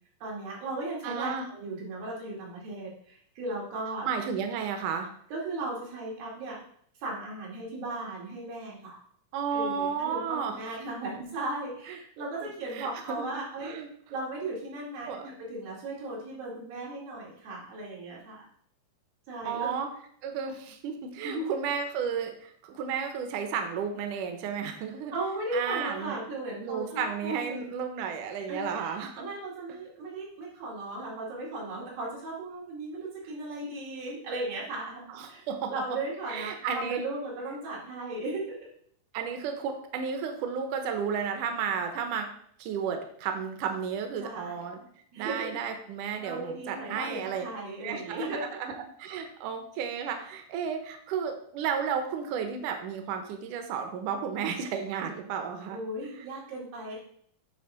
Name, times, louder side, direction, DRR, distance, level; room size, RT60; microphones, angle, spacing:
voice 1, 0.2-4.1 5.3-6.6 7.0-9.0 9.5-13.7 14.1-18.5 19.3-19.7 21.2-21.6 25.1-27.6 28.5-35.0 35.3-38.7 44.2-44.5 45.1-45.6 46.2-48.6 55.7-57.0, right 2 dB, 90° right, -5 dB, 4.3 m, -36 dB
voice 2, 1.0-1.5 4.0-5.1 9.3-10.8 11.9-12.0 12.4-13.2 13.6-13.9 15.1-15.4 19.4-19.9 20.2-25.1 25.5-26.2 26.6-29.3 35.1-35.7 36.3-37.0 39.1-42.3 42.6-44.8 45.2-47.4 47.8-55.8 56.1-56.3, right 7 dB, 70° right, 5 dB, 2.3 m, -33 dB
9.6 x 3.5 x 5.8 m, 0.64 s
omnidirectional pair, 4.0 m